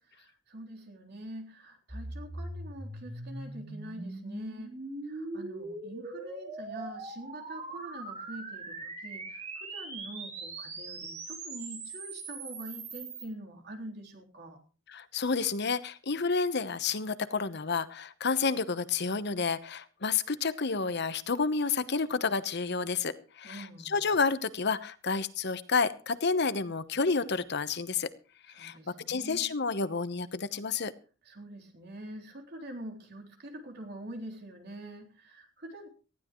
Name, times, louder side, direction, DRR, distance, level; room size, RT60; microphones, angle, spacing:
voice 1, 0.2-4.8 5.0-14.6 23.4-23.9 28.5-29.5 31.2-35.9, right 1 dB, 55° right, 1 dB, 3.7 m, -45 dB
sound 1, 1.9-13.3, right 2 dB, 35° right, 4.5 m, -41 dB
voice 2, 14.9-28.1 28.6-28.8 29.1-30.9, left 4 dB, 60° left, 13 dB, 1.0 m, -30 dB
19.0 x 15.0 x 3.1 m, 0.36 s
head